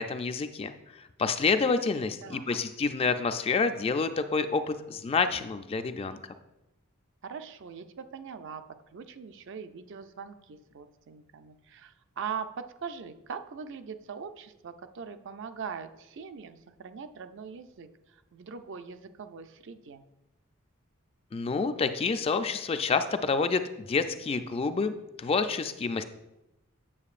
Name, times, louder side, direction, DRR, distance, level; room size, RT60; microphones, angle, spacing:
voice 1, 0.0-6.2 21.3-26.0, left 4 dB, 30° left, 9 dB, 0.3 m, -28 dB
voice 2, 2.2-2.6 7.2-8.6 8.9-20.0, right 6 dB, 60° right, 9 dB, 0.4 m, -41 dB
8.5 x 7.2 x 2.4 m, 0.94 s
head